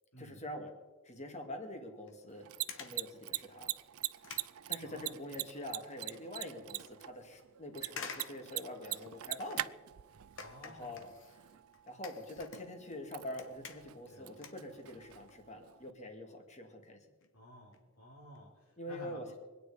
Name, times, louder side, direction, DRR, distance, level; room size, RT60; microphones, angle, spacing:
voice 1, 0.2-0.7 1.0-2.5 2.7-3.7 4.7-9.6 10.6-11.1 11.9-17.0 18.8-19.3, left 1 dB, 35° left, 4 dB, 2.3 m, -45 dB
sound 1, 2.1-2.2 2.7-3.1 3.6-3.7 4.0-5.4 5.7-6.2 6.6-6.7 7.9-9.8 10.4-13.0 13.3-14.1 14.4-15.3 15.6-15.8 16.5-16.6 16.9-17.0 17.2-17.3 17.6-17.8 18.2-18.4 18.6-18.7, left 5 dB, 65° left, 1.5 m, -50 dB
Mechanisms, 2.3-15.9, right 16 dB, 85° right, 0.5 m, -44 dB
voice 2, 4.8-5.1 10.3-11.1 14.1-14.4 17.3-19.3, equal, 85° left, -8 dB, 4.6 m, -53 dB
24.5 x 9.4 x 5.1 m, 1.3 s
head